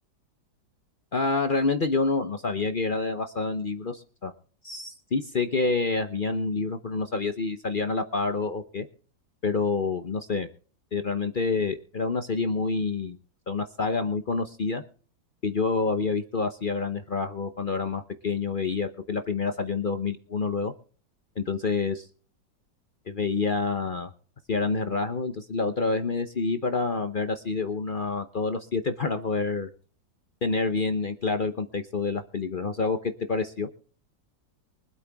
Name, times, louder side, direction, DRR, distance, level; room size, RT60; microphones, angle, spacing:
voice 1, 1.1-4.3 4.6-8.9 9.4-10.5 10.9-13.2 13.5-14.8 15.4-20.7 21.4-22.0 23.1-24.1 24.5-29.7 30.4-33.7, left 4 dB, 60° left, 8 dB, 0.5 m, -28 dB
24.0 x 8.5 x 3.5 m, 0.43 s
omnidirectional pair, 2.1 m